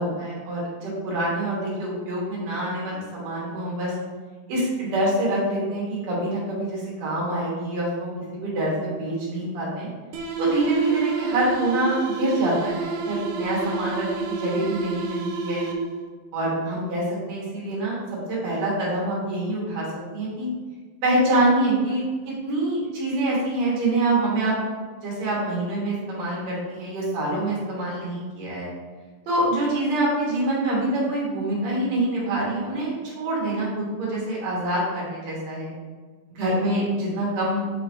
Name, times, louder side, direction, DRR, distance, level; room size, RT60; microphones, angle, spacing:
voice 1, 0.0-3.9 4.5-9.9 10.4-15.7 16.3-18.0 18.3-19.9 20.1-20.5 21.0-24.5 25.0-28.7 29.3-35.7 36.3-37.6, right 1 dB, 60° right, -6 dB, 2.2 m, -25 dB
sound 1, 10.1-16.1, right 4 dB, 80° right, 1.9 m, -29 dB
6.0 x 2.9 x 2.9 m, 1.4 s
omnidirectional pair, 4.0 m